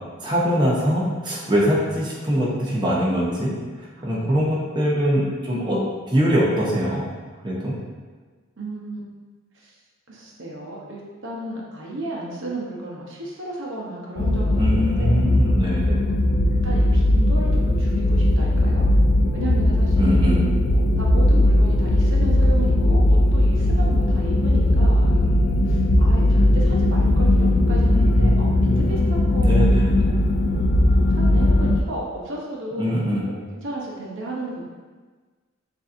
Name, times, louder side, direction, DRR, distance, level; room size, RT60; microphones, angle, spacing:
voice 1, 0.2-5.8 6.1-7.0 7.4-7.7 14.5-16.0 20.0-20.4 27.9-28.3 28.6-28.8 29.4-30.2 32.8-33.2, equal, 25° right, -5 dB, 0.7 m, -23 dB
voice 2, 4.0-4.6 8.6-9.0 9.5-9.8 10.1-15.2 15.8-16.2 16.6-18.9 19.3-20.3 20.7-30.3 31.1-34.7, right 2 dB, 65° right, -3 dB, 0.8 m, -34 dB
sound 1, 14.2-31.8, left 1 dB, 55° left, 0.4 m, -18 dB
6.6 x 2.7 x 2.5 m, 1.4 s
head